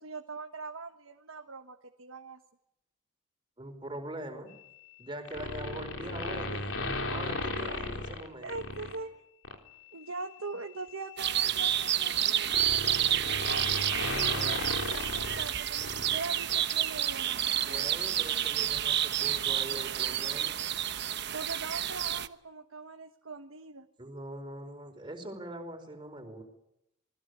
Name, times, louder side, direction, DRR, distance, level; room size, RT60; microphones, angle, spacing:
voice 1, 0.0-2.4 6.5-6.6 8.4-9.1 9.9-13.8 14.3-18.0 21.3-23.9, right 3 dB, 75° right, 5 dB, 1.4 m, -42 dB
voice 2, 3.6-4.5 5.0-6.6 7.1-8.5 17.6-20.6 24.0-26.4, right 1 dB, 25° right, 5 dB, 4.8 m, -42 dB
sound 1, 5.3-9.0 9.4-9.7 10.9-16.2 16.5-16.6, left 2 dB, 70° left, 3.7 m, -36 dB
sound 2, 11.2-22.3, right 11 dB, 55° right, 1.0 m, -30 dB
28.0 x 20.5 x 8.2 m, 0.83 s
head